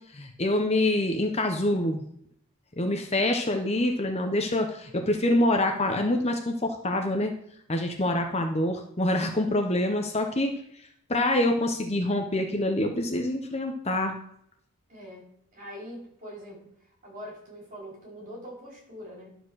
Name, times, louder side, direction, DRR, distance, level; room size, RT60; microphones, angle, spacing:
voice 1, 0.1-2.0 2.8-7.3 7.7-10.5 11.1-14.2, left 1 dB, 30° left, 4 dB, 0.9 m, -26 dB
voice 2, 14.9-16.7 17.0-19.4, equal, 35° right, -4 dB, 4.9 m, -43 dB
11.5 x 5.1 x 6.4 m, 0.70 s
head